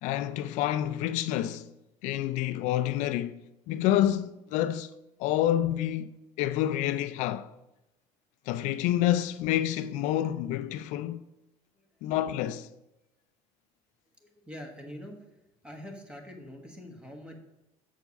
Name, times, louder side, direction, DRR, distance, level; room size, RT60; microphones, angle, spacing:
voice 1, 0.0-1.7 2.0-3.3 3.7-4.9 5.2-7.5 8.5-11.2 12.0-12.7, left 12 dB, 70° left, 0.4 m, -28 dB
voice 2, 14.2-17.3, equal, 10° right, 1.3 m, -45 dB
7.0 x 4.6 x 6.8 m
cardioid pair, 145°, 13 cm